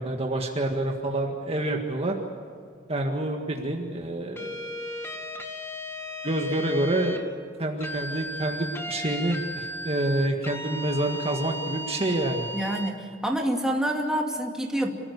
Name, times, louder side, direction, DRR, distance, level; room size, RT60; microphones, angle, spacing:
voice 1, 0.0-2.1 2.9-4.7 6.2-7.3 7.6-12.5, right 1 dB, 30° right, 2 dB, 1.7 m, -27 dB
sound 1, 4.4-7.2 7.8-12.9, equal, 15° left, 2.0 m, -36 dB
voice 2, 12.5-14.9, right 1 dB, 5° right, 0 dB, 2.5 m, -27 dB
26.5 x 16.0 x 8.3 m, 2.2 s
head